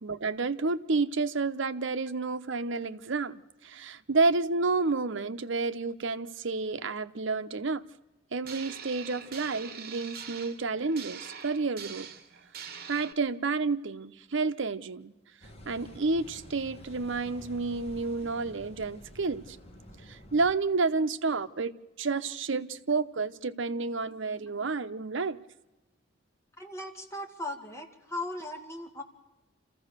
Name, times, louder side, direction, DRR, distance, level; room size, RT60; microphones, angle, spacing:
voice 1, 0.0-7.8 8.3-12.1 12.9-15.1 15.7-19.6 20.1-25.4, right 3 dB, 70° right, 11 dB, 0.8 m, -30 dB
sound 1, 8.4-13.1, right 7 dB, 55° right, 1.4 m, -44 dB
Car passing by / Idling / Accelerating revving vroom, 15.4-20.5, equal, 30° left, 2.1 m, -49 dB
voice 2, 26.6-29.0, left 1 dB, 15° left, 2 dB, 2.4 m, -38 dB
26.5 x 15.0 x 6.7 m, 1.1 s
head